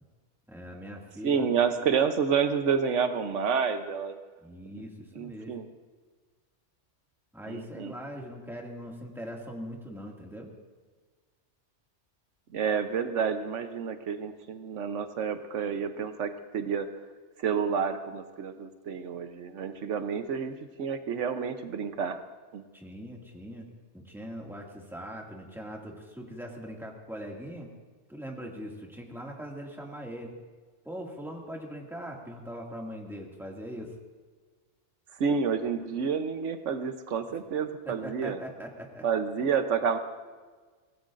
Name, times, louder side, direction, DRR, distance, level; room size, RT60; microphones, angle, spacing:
voice 1, 0.5-1.8 4.4-5.6 7.3-10.5 22.7-23.7 23.9-27.7 28.1-30.3 30.8-33.9 37.9-39.0, equal, ahead, -1 dB, 2.0 m, -41 dB
voice 2, 1.2-4.2 4.7-4.8 5.2-5.7 7.5-7.9 12.5-16.9 17.4-22.2 22.5-22.6 35.2-38.4 39.0-40.0, right 6 dB, 85° right, 8 dB, 1.2 m, -29 dB
23.5 x 18.0 x 2.5 m, 1.4 s
omnidirectional pair, 1.2 m